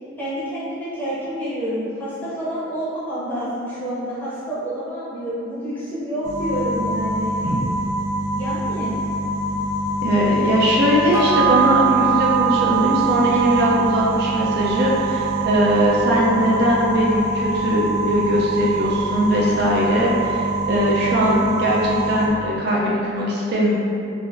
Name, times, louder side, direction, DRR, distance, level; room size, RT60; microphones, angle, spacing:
voice 1, 0.2-7.3 8.3-8.9, right 1 dB, 10° left, -10 dB, 0.6 m, -28 dB
sound 1, 6.2-22.3, right 2 dB, 90° right, 0.7 m, -24 dB
voice 2, 10.0-23.8, equal, 50° right, -4 dB, 0.4 m, -20 dB
sound 2, 11.1-19.9 20.2-20.3, right 10 dB, 75° left, 0.7 m, -26 dB
3.3 x 2.4 x 2.4 m, 2.6 s
head